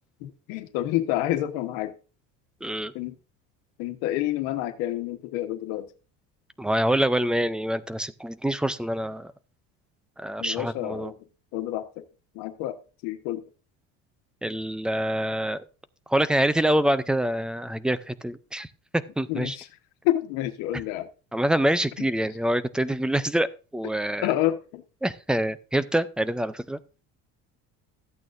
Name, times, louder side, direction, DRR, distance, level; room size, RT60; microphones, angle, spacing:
voice 1, 0.2-2.0 2.9-3.1 3.8-5.9 10.4-11.2 11.5-12.0 12.3-12.8 13.0-13.4 19.3-19.7 20.0-21.1 22.0-22.1 24.2-24.8, left 14 dB, 90° left, 8 dB, 1.3 m, -28 dB
voice 2, 2.6-2.9 6.6-9.3 10.2-11.1 14.4-15.6 16.1-18.7 19.2-19.6 21.3-24.3 25.0-26.8, right 1 dB, 5° right, 14 dB, 0.4 m, -26 dB
14.0 x 8.7 x 2.6 m, 0.34 s
cardioid pair, 150°, 31 cm